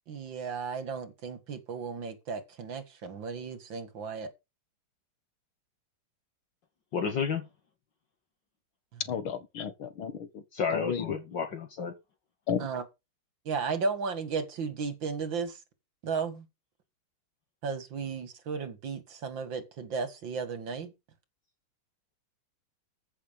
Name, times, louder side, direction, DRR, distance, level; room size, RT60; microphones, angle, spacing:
voice 1, 0.1-4.3 12.6-12.8 13.5-15.6 16.0-16.5 17.6-20.9, right 5 dB, 65° right, 2.6 m, -34 dB
voice 2, 6.9-7.5 10.5-11.9, left 6 dB, 60° left, 2.3 m, -31 dB
voice 3, 9.1-10.4 10.7-11.2 12.5-12.7, left 7 dB, 80° left, 2.4 m, -33 dB
14.5 x 6.5 x 5.3 m
omnidirectional pair, 2.2 m